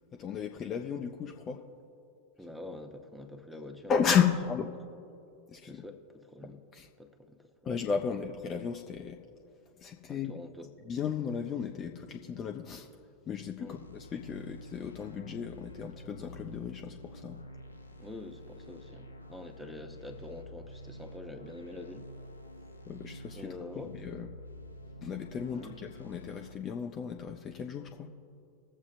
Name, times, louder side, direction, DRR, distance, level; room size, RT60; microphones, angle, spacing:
voice 1, 0.1-1.6 3.9-4.7 5.5-5.8 6.4-6.9 7.6-9.2 9.8-10.4 10.9-12.9 13.3-17.4 22.9-24.3 25.0-28.1, left 7 dB, 25° left, 3 dB, 0.6 m, -34 dB
voice 2, 2.4-3.9 5.6-6.6 7.0-7.7 10.1-10.7 13.6-13.8 18.0-22.1 23.3-23.9 25.5-25.7, left 2 dB, ahead, 5 dB, 0.9 m, -46 dB
sound 1, 13.7-26.6, equal, 85° left, 0.7 m, -49 dB
20.5 x 7.3 x 2.6 m, 2.6 s
figure-of-eight pair, 90°, 0 cm